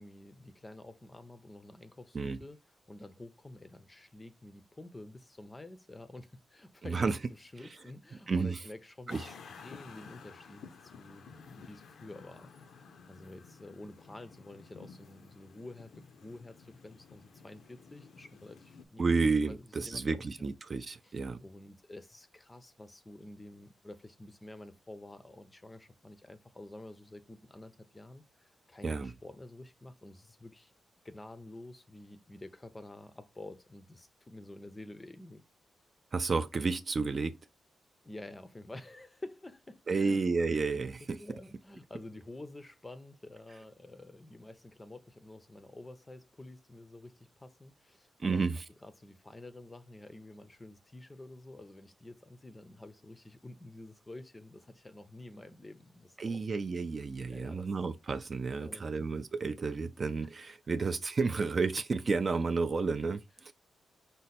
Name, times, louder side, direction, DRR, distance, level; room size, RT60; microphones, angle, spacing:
voice 1, 0.0-2.6 2.9-12.5 13.1-20.5 21.0-30.7 31.0-35.4 38.0-40.2 41.2-48.4 48.8-56.4 57.3-57.7 58.6-59.1 60.2-60.3, left 2 dB, 15° left, 0.5 m, -49 dB
voice 2, 6.8-7.2 8.3-8.6 9.1-9.3 19.0-21.4 28.8-29.1 36.1-37.3 39.9-41.2 48.2-48.6 56.2-63.5, right 4 dB, 35° right, 0.3 m, -31 dB
sound 1, 9.1-18.9, left 5 dB, 70° left, 0.5 m, -53 dB
5.2 x 2.1 x 4.1 m
wide cardioid pair, 145°, 0 cm